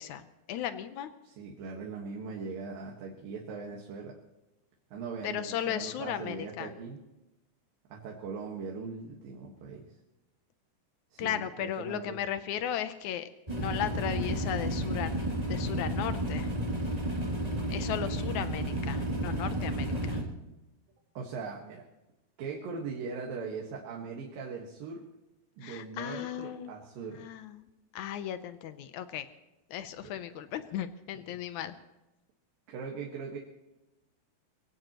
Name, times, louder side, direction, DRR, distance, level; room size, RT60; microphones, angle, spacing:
voice 1, 0.0-1.1 5.2-6.7 11.2-16.5 17.7-20.2 25.6-26.7 27.2-27.7 27.9-29.3 29.7-31.7, left 10 dB, 80° left, 11 dB, 1.7 m, -36 dB
voice 2, 1.2-4.2 4.9-7.0 7.9-9.9 11.1-12.2 21.1-21.8 22.4-25.0 25.6-27.3 30.0-30.2 32.7-33.4, right 5 dB, 70° right, -1 dB, 3.3 m, -40 dB
sound 1, 13.5-20.2, right 1 dB, 10° right, 2.3 m, -32 dB
23.5 x 17.0 x 3.0 m, 0.99 s
omnidirectional pair, 4.3 m